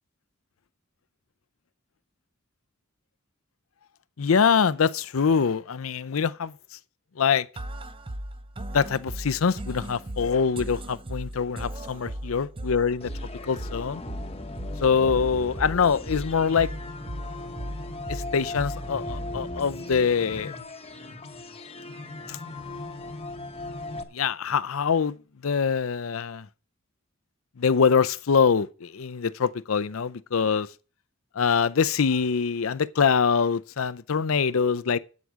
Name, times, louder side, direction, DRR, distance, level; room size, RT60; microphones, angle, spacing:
voice 1, 4.2-6.5 7.2-7.5 8.7-13.1 13.5-14.0 14.8-16.7 18.1-20.5 22.3-22.4 24.1-25.2 25.4-26.5 27.6-30.7 31.4-35.0, left 6 dB, 80° left, 0.6 m, -24 dB
sound 1, 7.6-19.6, right 1 dB, 25° right, 0.7 m, -37 dB
sound 2, 13.0-24.0, left 2 dB, 30° left, 1.0 m, -38 dB
8.5 x 8.1 x 6.3 m
head